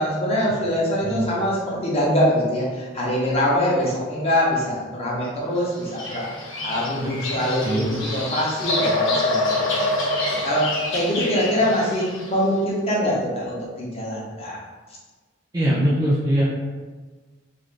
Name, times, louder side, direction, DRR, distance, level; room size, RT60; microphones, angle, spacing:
voice 1, 0.0-6.3 6.6-10.0 10.4-14.6, equal, 30° left, -5 dB, 0.7 m, -23 dB
Bird vocalization bird call bird song, 5.7-12.4, left 2 dB, 65° left, 0.6 m, -26 dB
voice 2, 7.6-8.0 15.5-16.4, right 1 dB, 20° right, -8 dB, 0.5 m, -21 dB
3.2 x 2.5 x 2.5 m, 1.3 s
head